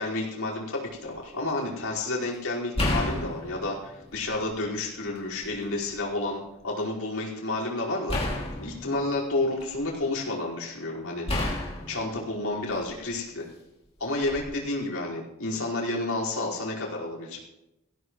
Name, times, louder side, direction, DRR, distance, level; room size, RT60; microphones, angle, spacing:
voice 1, 0.0-8.2 8.6-11.6 11.9-13.4 14.0-17.4, left 2 dB, 75° left, -4 dB, 5.0 m, -30 dB
sound 1, 0.9-1.2 2.7-4.6 5.1-6.0 8.1-10.0 11.3-13.1 14.2-14.4, left 1 dB, 25° left, 2.7 m, -32 dB
20.5 x 16.0 x 3.2 m, 0.91 s
head